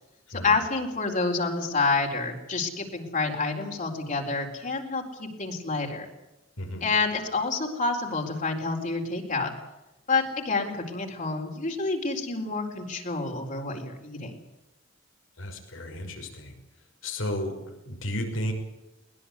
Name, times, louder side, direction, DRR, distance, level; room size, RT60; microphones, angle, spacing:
voice 1, 0.3-6.1 6.8-9.5 10.1-14.4, left 3 dB, 40° left, 1 dB, 4.1 m, -28 dB
voice 2, 15.4-16.6 17.0-18.5, left 1 dB, 80° left, 3 dB, 6.0 m, -33 dB
22.0 x 20.5 x 8.3 m, 0.98 s
head